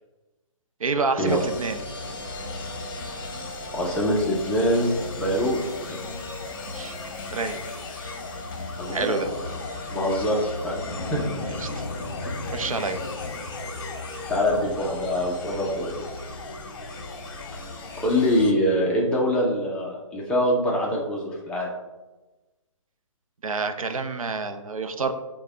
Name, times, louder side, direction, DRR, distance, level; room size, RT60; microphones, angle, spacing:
voice 1, 0.8-1.8 6.7-7.0 7.3-7.6 8.9-9.3 11.5-11.8 12.5-13.0 23.4-25.1, right 4 dB, 80° right, 9 dB, 0.5 m, -28 dB
sound 1, 1.3-18.5, left 3 dB, 40° left, 0.8 m, -35 dB
voice 2, 3.7-4.9 5.2-5.6 5.9-6.0 8.8-9.6 9.9-11.2 12.2-12.5 14.3-16.0 18.0-21.7, equal, 5° left, -3 dB, 0.4 m, -24 dB
6.5 x 2.2 x 3.3 m, 1.1 s
figure-of-eight pair, 140°, 17 cm